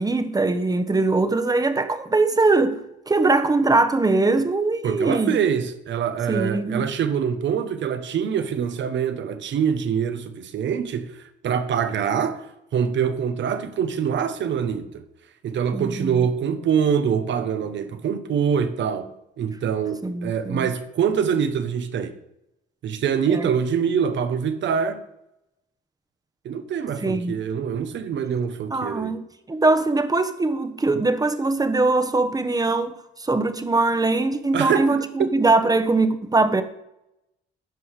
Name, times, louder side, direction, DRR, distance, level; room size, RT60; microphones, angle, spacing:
voice 1, 0.0-2.8 3.1-5.3 6.3-6.9 15.7-16.3 20.0-20.7 23.3-23.5 27.0-27.3 28.7-36.6, right 3 dB, 20° right, 1.1 m, -22 dB
voice 2, 4.8-11.1 11.4-12.4 12.7-15.0 15.4-19.1 19.4-22.1 22.8-25.0 26.4-29.2 34.5-35.3, right 7 dB, 65° right, 1.2 m, -24 dB
14.0 x 5.5 x 4.9 m
cardioid pair, 90°, 20 cm